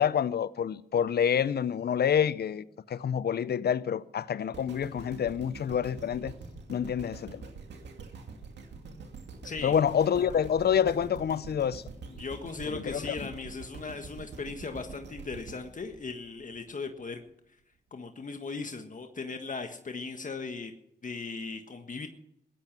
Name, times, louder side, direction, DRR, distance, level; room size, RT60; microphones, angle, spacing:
voice 1, 0.0-6.3 6.7-7.4 9.6-11.8 12.7-13.1, left 8 dB, 65° left, 0.7 m, -27 dB
sound 1, 4.5-16.7 17.3-17.4, right 4 dB, 90° right, 2.3 m, -45 dB
voice 2, 9.4-9.7 12.1-17.2 17.9-20.7 21.0-22.1, left 4 dB, 50° left, 1.6 m, -38 dB
16.5 x 12.5 x 6.1 m
cardioid pair, 50°, 18 cm